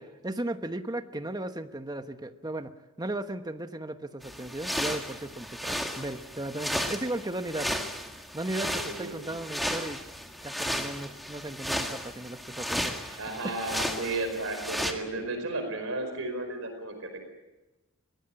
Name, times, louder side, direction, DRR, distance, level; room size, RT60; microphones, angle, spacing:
voice 1, 0.2-7.8 8.3-10.0 10.4-13.6, right 1 dB, 20° right, 8 dB, 1.1 m, -36 dB
sound 1, 4.2-14.9, equal, ahead, 1.9 m, -34 dB
voice 2, 8.7-9.3 13.2-17.2, right 2 dB, 65° right, 6 dB, 4.8 m, -34 dB
22.5 x 18.5 x 8.8 m, 1.1 s
head